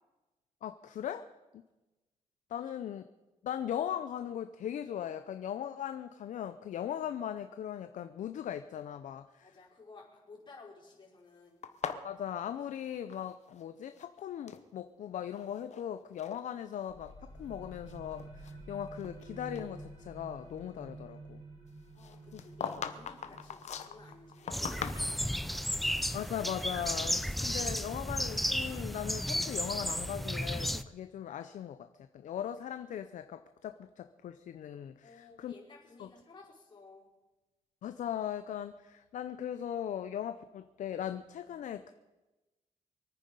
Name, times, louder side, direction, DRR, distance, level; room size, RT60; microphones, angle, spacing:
voice 1, 0.6-1.2 2.5-3.0 3.4-9.5 12.0-21.4 22.3-22.4 26.1-31.9 32.1-35.5 36.0-36.1 37.8-41.9, left 10 dB, 80° left, 10 dB, 0.6 m, -39 dB
voice 2, 9.4-11.6 21.9-25.7 35.0-37.1, left 3 dB, 40° left, -4 dB, 5.1 m, -55 dB
sound 1, 11.6-13.6 13.9-14.7 15.3-15.9 16.2-16.4 17.1-17.2 17.7-19.2 19.6-19.7 22.0-25.4, left 7 dB, 65° left, 1.0 m, -41 dB
sound 2, 16.9-28.3, right 2 dB, 40° right, 5.4 m, -51 dB
sound 3, 24.5-30.8, equal, ahead, 0.5 m, -33 dB
24.0 x 9.3 x 5.4 m, 1.1 s
wide cardioid pair, 125°, 13 cm